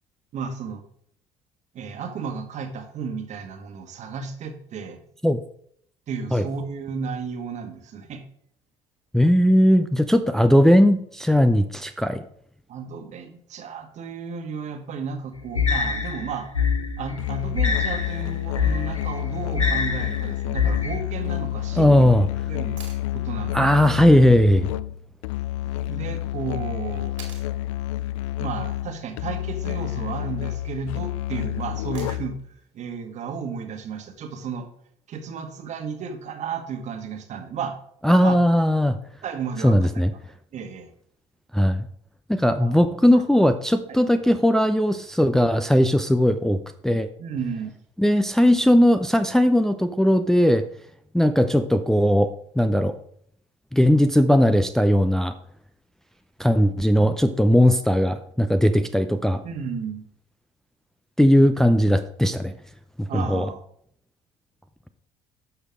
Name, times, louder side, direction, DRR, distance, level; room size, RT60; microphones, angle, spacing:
voice 1, 0.3-0.8 1.7-5.0 6.1-8.2 12.7-16.5 17.0-22.1 22.5-22.8 23.1-23.8 25.9-27.1 28.4-32.4 32.7-34.7 35.1-37.8 38.1-38.4 39.2-39.8 40.5-40.9 42.6-42.8 43.1-43.2 43.9-44.0 47.2-47.7 59.4-60.0 63.1-63.6, right 5 dB, 50° right, 6 dB, 1.6 m, -33 dB
voice 2, 9.1-12.2 21.8-22.3 23.5-24.7 38.0-39.0 39.6-40.1 41.5-41.9 42.3-47.1 48.0-50.7 51.1-53.0 53.7-55.3 56.4-59.4 61.2-62.5 63.0-63.5, equal, 5° left, 8 dB, 0.6 m, -18 dB
sound 1, 15.5-20.9, left 6 dB, 90° left, 0.9 m, -25 dB
Musical instrument, 17.2-32.5, left 13 dB, 70° left, 0.4 m, -29 dB
sound 2, 22.8-23.1 25.3-25.4 27.2-27.5 29.5-29.9 31.9-32.4 34.5-34.6, right 6 dB, 80° right, 2.3 m, -44 dB
12.0 x 6.4 x 3.7 m, 0.65 s
figure-of-eight pair, 55°, 16 cm